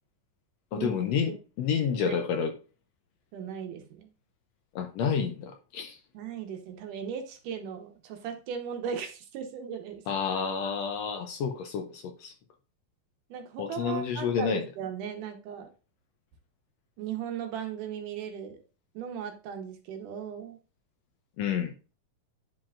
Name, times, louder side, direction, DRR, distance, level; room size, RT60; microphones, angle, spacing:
voice 1, 0.7-2.5 4.7-6.0 10.1-12.3 13.6-14.6 21.4-21.7, left 7 dB, 80° left, 1.6 m, -29 dB
voice 2, 3.3-4.1 6.1-10.0 13.3-15.7 17.0-18.6 18.9-20.6, right 8 dB, 85° right, 2.7 m, -37 dB
10.5 x 4.6 x 2.4 m
omnidirectional pair, 3.5 m